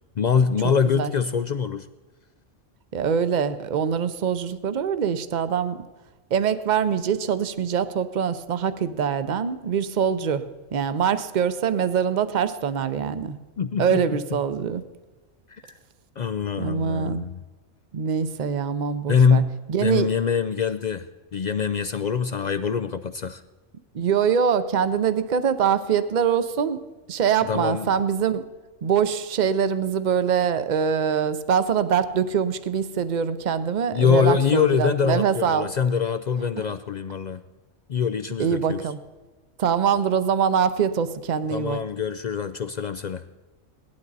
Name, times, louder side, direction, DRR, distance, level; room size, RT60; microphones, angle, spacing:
voice 1, 0.2-1.9 13.6-14.0 15.5-15.7 16.2-17.4 19.1-19.5 19.8-21.1 21.3-23.4 27.5-27.9 33.9-37.4 37.9-38.8 41.5-43.2, left 6 dB, 65° left, 11 dB, 0.4 m, -24 dB
voice 2, 2.9-5.8 6.3-13.4 13.8-14.8 16.6-17.2 17.9-19.4 19.7-20.1 23.9-26.8 27.1-28.4 28.8-35.7 36.6-36.7 38.4-39.0 39.6-41.8, right 7 dB, 45° right, 12 dB, 0.7 m, -24 dB
18.0 x 11.5 x 4.1 m, 1.2 s
omnidirectional pair, 1.3 m